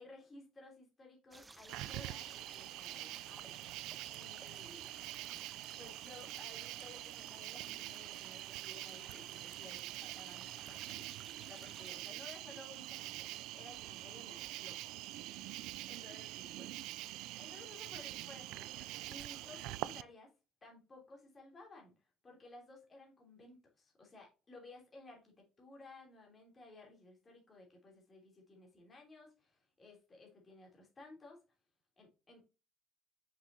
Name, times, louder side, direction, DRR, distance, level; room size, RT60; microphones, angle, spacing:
voice 1, 0.0-3.6 4.1-4.9 5.8-11.1 11.4-16.8 17.4-20.3 20.6-21.9 22.2-31.4 32.0-32.4, left 2 dB, 25° left, 0 dB, 3.0 m, -57 dB
sound 1, 1.3-12.0, right 3 dB, 15° right, 0.5 m, -58 dB
Cricket, 1.7-20.0, right 17 dB, 85° right, 0.3 m, -45 dB
6.4 x 6.1 x 2.7 m, 0.29 s
cardioid pair, 140°, 0 cm